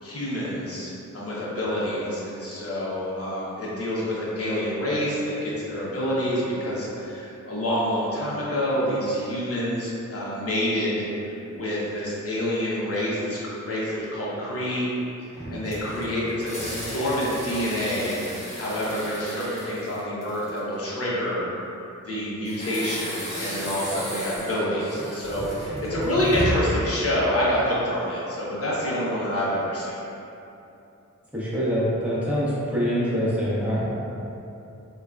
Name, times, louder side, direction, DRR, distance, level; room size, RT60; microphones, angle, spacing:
voice 1, 0.0-14.9 15.5-21.5 22.0-30.0, equal, 45° left, -7 dB, 0.9 m, -27 dB
sound 1, 15.4-20.7 22.4-26.8, equal, 20° left, 1.0 m, -34 dB
voice 2, 31.3-33.9, equal, 5° right, -10 dB, 1.0 m, -25 dB
3.7 x 2.3 x 2.3 m, 2.8 s
cardioid pair, 55°, 32 cm